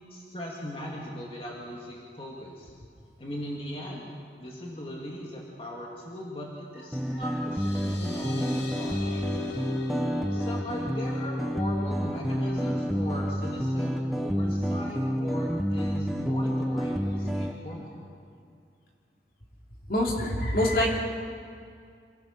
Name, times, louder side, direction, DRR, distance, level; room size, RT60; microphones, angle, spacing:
voice 1, 0.1-2.7 3.2-4.1 4.4-9.6 10.3-17.9, left 1 dB, 30° left, -3 dB, 2.2 m, -39 dB
sound 1, 6.9-17.5, equal, ahead, 1.0 m, -29 dB
sound 2, 7.0-14.1, left 5 dB, 90° left, 2.3 m, -43 dB
voice 2, 19.9-21.0, left 1 dB, 55° left, -1 dB, 3.0 m, -25 dB
27.0 x 16.5 x 5.9 m, 2.3 s
head